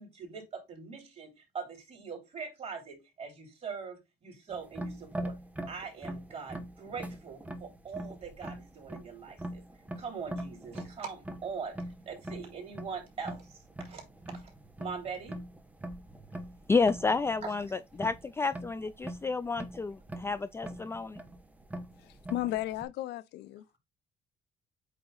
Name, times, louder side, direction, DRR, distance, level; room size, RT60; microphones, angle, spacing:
voice 1, 0.0-5.4 5.7-9.6 10.0-11.8 12.0-13.6 13.8-14.0 14.3-14.5 14.8-15.4 17.4-17.5, right 5 dB, 40° right, 3.3 m, -42 dB
sound 1, 4.5-22.9, right 1 dB, 10° right, 1.1 m, -43 dB
voice 2, 16.7-21.2, left 4 dB, 15° left, 0.3 m, -30 dB
voice 3, 22.3-23.8, left 15 dB, 80° left, 0.5 m, -34 dB
8.2 x 2.9 x 3.9 m
cardioid pair, 110°, 17 cm